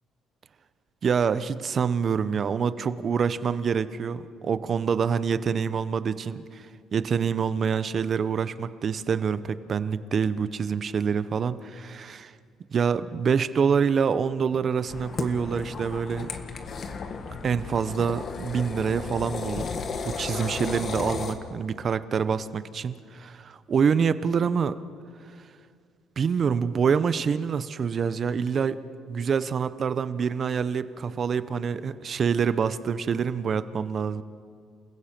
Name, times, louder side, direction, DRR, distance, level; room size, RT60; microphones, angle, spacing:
voice 1, 1.0-6.7 6.9-12.3 12.7-16.3 17.4-19.7 20.0-24.8 26.2-28.8 29.1-34.2, right 6 dB, 45° right, 14 dB, 0.8 m, -26 dB
sound 1, 14.9-21.3, left 5 dB, 50° left, 1.7 m, -34 dB
29.0 x 16.0 x 6.0 m, 2.1 s
cardioid pair, 90°, 0 cm